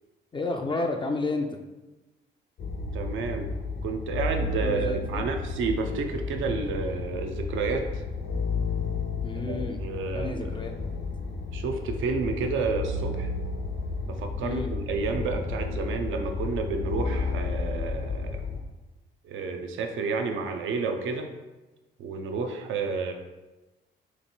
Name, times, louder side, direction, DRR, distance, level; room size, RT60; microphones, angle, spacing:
voice 1, 0.3-1.5 4.6-5.3 9.2-9.8 10.1-10.7 14.4-14.7, left 3 dB, 25° left, 3 dB, 0.4 m, -31 dB
sound 1, 2.6-18.6, left 3 dB, 60° left, 0.9 m, -32 dB
voice 2, 2.9-3.5 3.8-8.0 9.5-10.6 11.5-13.3 14.1-18.4 19.2-21.3 22.0-23.1, right 4 dB, 75° right, 5 dB, 0.6 m, -30 dB
3.2 x 3.1 x 4.2 m, 1.1 s
cardioid pair, 90°, 20 cm